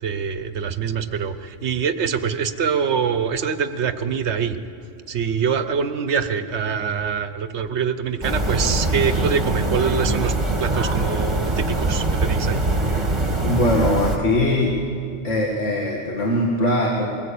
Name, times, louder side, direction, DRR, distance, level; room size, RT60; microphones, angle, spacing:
voice 1, 0.0-4.6 5.1-12.6, right 6 dB, 65° right, 10 dB, 1.3 m, -24 dB
sound 1, 8.2-14.2, right 2 dB, 25° right, 1.7 m, -23 dB
voice 2, 13.4-14.8 15.2-17.1, left 1 dB, 70° left, -2 dB, 2.2 m, -21 dB
22.5 x 18.0 x 8.5 m, 2.5 s
omnidirectional pair, 1.3 m